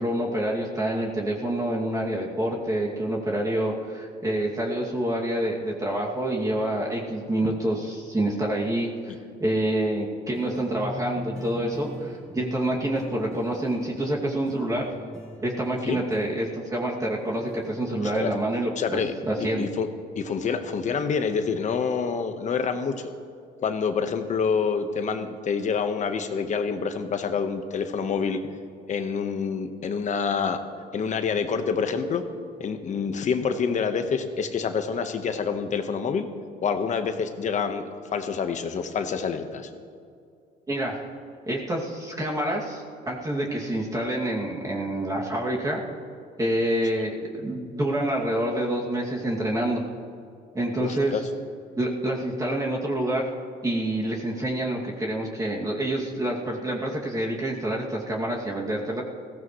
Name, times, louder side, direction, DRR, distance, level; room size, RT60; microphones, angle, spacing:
voice 1, 0.0-9.1 9.4-14.9 15.4-18.7 19.3-19.7 40.7-41.1 41.5-45.8 46.4-49.8 50.5-51.2 51.8-53.2 53.6-59.0, right 1 dB, 20° right, -3 dB, 2.4 m, -27 dB
sound 1, 10.3-18.8, equal, 5° left, 4.4 m, -42 dB
voice 2, 18.8-19.1 19.6-19.9 20.1-23.1 23.6-28.4 28.9-30.6 30.9-32.2 32.6-36.3 36.6-37.8 38.1-39.7 50.8-51.2, left 6 dB, 45° left, 7 dB, 1.2 m, -27 dB
20.5 x 16.0 x 3.2 m, 2.3 s
cardioid pair, 110°, 17 cm